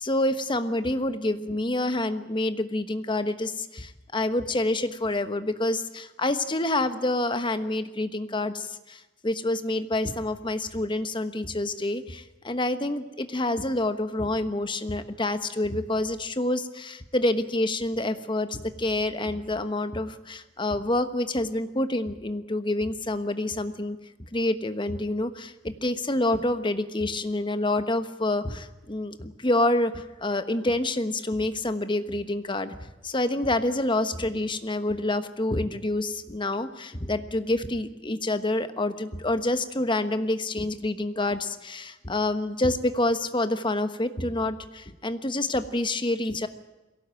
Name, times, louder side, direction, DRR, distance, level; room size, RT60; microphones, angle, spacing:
voice 1, 0.0-24.0 24.3-32.8 33.0-46.5, left 1 dB, 25° left, 10 dB, 1.2 m, -27 dB
22.0 x 17.0 x 9.0 m, 1.1 s
head